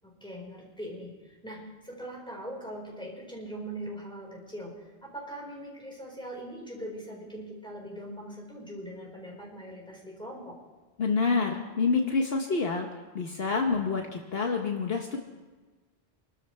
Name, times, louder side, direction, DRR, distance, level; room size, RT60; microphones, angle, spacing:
voice 1, 0.0-10.6, right 1 dB, 5° left, -3 dB, 4.7 m, -41 dB
voice 2, 11.0-15.2, left 4 dB, 65° left, 2 dB, 1.3 m, -27 dB
26.5 x 13.0 x 3.3 m, 1.3 s
omnidirectional pair, 1.1 m